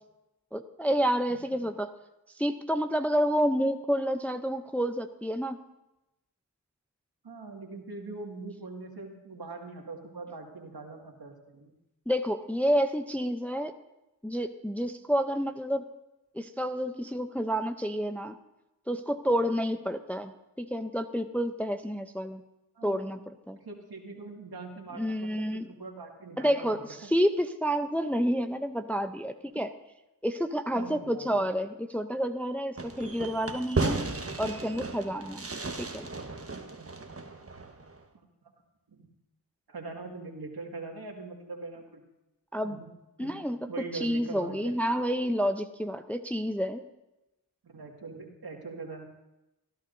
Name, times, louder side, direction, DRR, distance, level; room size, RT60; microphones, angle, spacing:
voice 1, 0.5-1.9 2.4-5.6 12.1-13.7 14.2-15.8 16.3-18.3 18.9-22.4 22.8-23.2 23.5-23.6 25.0-25.7 26.4-29.7 30.2-34.1 34.4-35.5 35.8-36.1 42.5-42.8 43.2-43.6 43.9-46.8, equal, 5° left, 7 dB, 0.6 m, -29 dB
voice 2, 1.3-1.6 7.2-11.7 22.8-23.1 23.5-27.1 30.7-31.4 36.5-36.9 38.1-38.2 38.9-39.1 39.7-42.0 42.6-42.9 43.2-43.4 43.7-44.8 47.6-49.0, right 3 dB, 55° right, 1 dB, 2.2 m, -42 dB
Fireworks, 32.8-38.0, right 3 dB, 30° right, 1.3 m, -35 dB
25.5 x 11.5 x 2.7 m, 0.96 s
cardioid pair, 40°, 43 cm